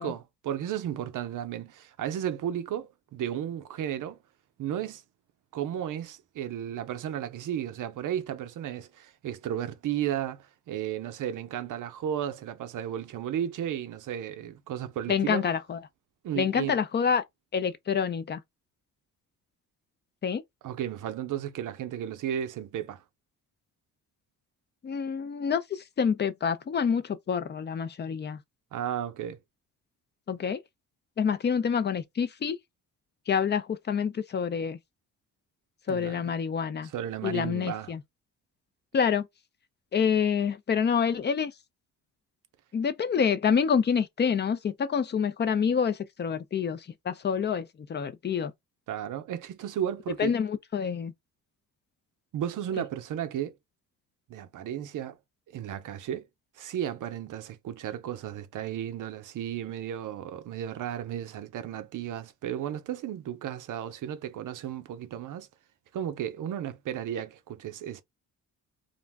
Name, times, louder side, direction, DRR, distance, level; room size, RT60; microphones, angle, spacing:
voice 1, 0.0-4.2 4.6-5.0 5.5-15.5 16.2-16.8 20.6-23.0 28.7-29.4 35.9-36.4 36.8-37.9 48.9-50.4 52.3-53.5 54.3-55.2 55.5-56.3 56.6-65.5 65.9-68.0, right 10 dB, 65° right, 0.5 m, -34 dB
voice 2, 15.1-15.8 16.4-17.2 17.5-18.4 20.2-20.4 24.8-28.4 30.3-30.6 31.2-32.6 33.3-34.8 35.9-36.9 37.2-38.0 38.9-39.3 39.9-41.5 42.7-46.8 47.1-48.5 50.2-51.1, left 7 dB, 30° left, 0.4 m, -27 dB
2.5 x 2.1 x 3.3 m
cardioid pair, 95°, 34 cm